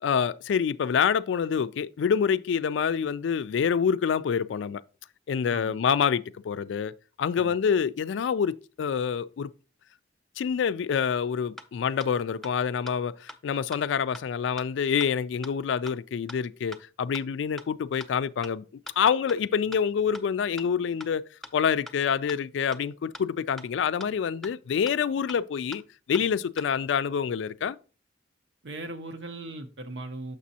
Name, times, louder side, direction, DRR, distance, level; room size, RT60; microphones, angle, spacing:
voice 1, 0.0-4.8 5.3-6.9 7.2-9.5 10.4-18.6 19.0-25.8 26.1-27.8, left 7 dB, 90° left, 0.3 m, -27 dB
sound 1, 11.6-11.7 12.0-12.1 12.4-12.5 12.9-13.0 13.3-13.4 13.7-13.8 14.1-14.2 14.6-14.7 15.0-15.1 15.4-15.5 15.9-16.0 16.3-16.4 16.7-16.8 17.1-17.2 17.6-17.7 18.0-18.1 18.4-18.5 18.9-19.0 19.3-19.4 19.7-19.8 20.1-20.2 20.6-20.7 21.0-21.1 21.4-21.5 21.9-22.0 22.3-22.4 22.7-22.8 23.1-23.2 23.6-23.7 24.0-24.1 24.4-24.5 24.9-25.0 25.3-25.4 25.7-25.8 26.1-26.2 26.6-26.7, equal, ahead, 0.4 m, -42 dB
voice 2, 28.6-30.4, right 2 dB, 80° right, 0.7 m, -38 dB
6.6 x 6.1 x 2.7 m
head